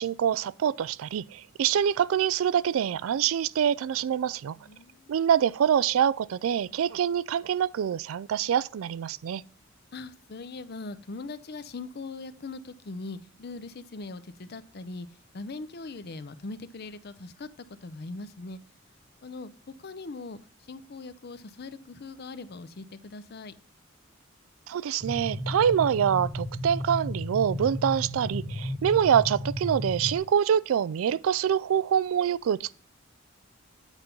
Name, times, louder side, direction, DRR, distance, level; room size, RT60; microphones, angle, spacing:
voice 1, 0.0-4.6 5.1-9.4 24.7-32.7, right 8 dB, 85° right, 0.3 m, -25 dB
voice 2, 4.6-5.1 9.9-15.1 15.3-17.5 17.8-18.6 19.2-19.5 19.8-20.4 20.7-23.5, left 3 dB, 50° left, 0.6 m, -40 dB
sound 1, 25.0-30.2, equal, ahead, 1.0 m, -33 dB
8.9 x 4.4 x 5.3 m
head